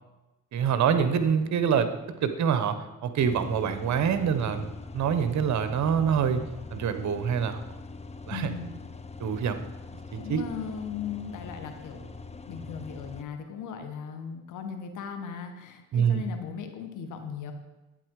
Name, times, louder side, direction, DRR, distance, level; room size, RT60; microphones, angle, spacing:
voice 1, 0.5-6.4 6.7-7.6 8.3-8.5 9.2-9.6 10.1-10.4 15.9-16.2, right 7 dB, 65° right, 10 dB, 1.1 m, -26 dB
sound 1, 3.2-13.2, left 3 dB, 20° left, 0.8 m, -43 dB
voice 2, 8.3-8.7 10.1-12.1 12.5-17.5, left 7 dB, 80° left, 6 dB, 1.7 m, -37 dB
11.5 x 9.0 x 4.8 m, 1.1 s
cardioid pair, 90°, 30 cm